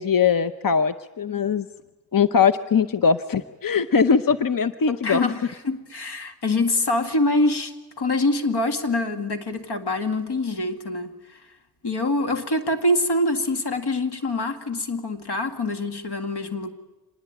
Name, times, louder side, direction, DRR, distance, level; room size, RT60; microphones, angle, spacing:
voice 1, 0.0-1.7 2.1-5.3, left 6 dB, 55° left, 0.8 m, -21 dB
voice 2, 4.9-11.4 11.8-16.7, left 2 dB, 85° left, 2.2 m, -25 dB
26.0 x 20.5 x 8.8 m
wide cardioid pair, 65°, 39 cm